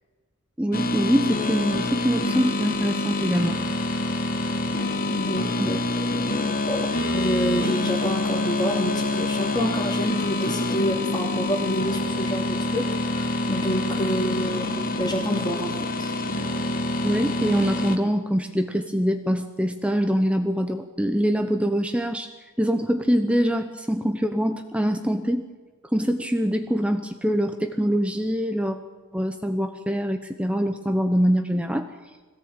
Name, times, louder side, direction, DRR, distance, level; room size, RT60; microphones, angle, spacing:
voice 1, 0.6-3.6 5.6-5.7 17.0-22.3 22.6-25.5 25.9-28.8 29.1-31.9, equal, 5° right, 6 dB, 0.9 m, -24 dB
sound 1, 0.7-18.0, left 2 dB, 40° left, 1.7 m, -26 dB
voice 2, 5.1-16.1, equal, 20° left, -4 dB, 2.7 m, -28 dB
22.0 x 17.0 x 9.0 m, 1.3 s
head